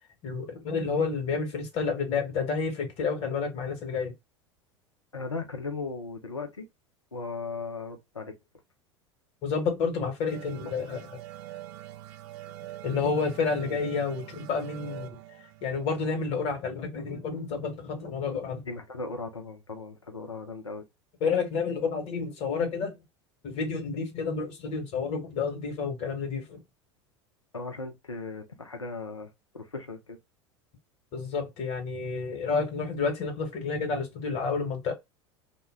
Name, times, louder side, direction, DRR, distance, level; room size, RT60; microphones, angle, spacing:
voice 1, 0.2-4.1 9.4-11.1 12.8-15.2 15.6-18.7 21.2-23.0 23.4-26.6 31.1-34.9, left 5 dB, 45° left, 1.1 m, -30 dB
voice 2, 5.1-6.7 7.1-8.3 18.7-20.8 27.5-29.3 29.5-30.2, left 3 dB, 90° left, 0.6 m, -37 dB
sound 1, 10.3-17.5, right 14 dB, 50° right, 0.5 m, -45 dB
2.2 x 2.1 x 3.4 m
figure-of-eight pair, 80°, 15 cm